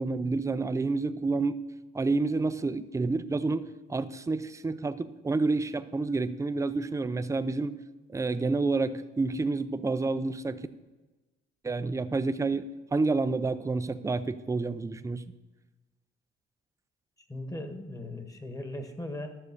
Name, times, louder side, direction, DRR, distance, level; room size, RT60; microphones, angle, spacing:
voice 1, 0.0-1.6 1.9-7.8 8.1-10.7 11.6-15.2, right 3 dB, 15° right, 11 dB, 0.5 m, -29 dB
voice 2, 17.3-19.3, left 1 dB, 15° left, 7 dB, 1.5 m, -38 dB
12.0 x 6.6 x 6.8 m, 1.2 s
cardioid pair, 90°, 20 cm